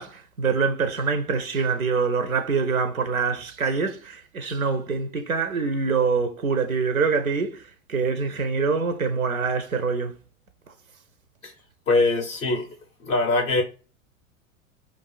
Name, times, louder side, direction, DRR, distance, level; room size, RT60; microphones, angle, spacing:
voice 1, 0.0-10.2, right 5 dB, 85° right, 0.6 m, -25 dB
voice 2, 11.9-12.7 13.0-13.6, left 2 dB, 15° left, 0.4 m, -22 dB
2.5 x 2.4 x 3.8 m
figure-of-eight pair, 95°, 41 cm